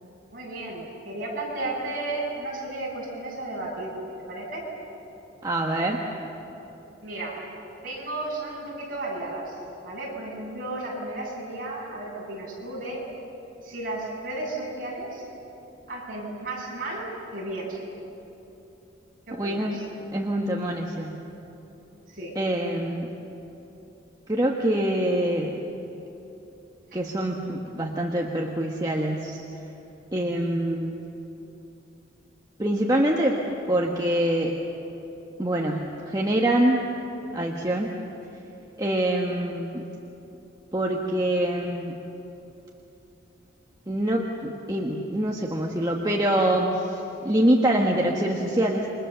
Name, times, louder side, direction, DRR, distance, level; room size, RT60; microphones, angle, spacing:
voice 1, 0.3-4.7 7.0-7.4 7.8-13.0 13.6-15.2 15.9-17.8 19.3-19.8 22.1-22.3 26.9-27.0, right 2 dB, 45° right, -4 dB, 8.0 m, -34 dB
voice 2, 5.4-6.1 19.3-19.8 20.1-21.2 22.3-23.1 24.3-25.6 26.9-29.4 30.1-31.0 32.6-34.6 35.4-36.8 37.3-37.9 38.8-39.8 40.7-42.0 43.9-48.9, right 1 dB, 20° right, -1 dB, 1.4 m, -25 dB
28.5 x 24.5 x 6.9 m, 3.0 s
head